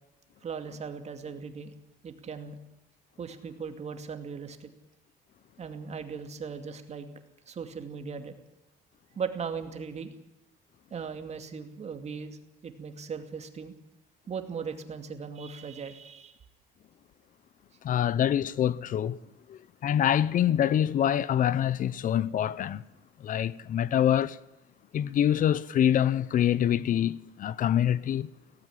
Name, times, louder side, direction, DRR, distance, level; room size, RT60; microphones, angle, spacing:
voice 1, 0.4-1.7 2.0-2.6 3.2-4.7 5.6-7.1 7.5-8.4 9.2-10.1 10.9-12.4 12.6-13.7 14.3-16.4, right 6 dB, 40° right, 2.5 m, -38 dB
voice 2, 17.8-19.2 19.5-22.8 23.2-24.4 24.9-28.3, left 10 dB, 50° left, 0.7 m, -25 dB
17.5 x 15.0 x 9.9 m
cardioid pair, 110°, 17 cm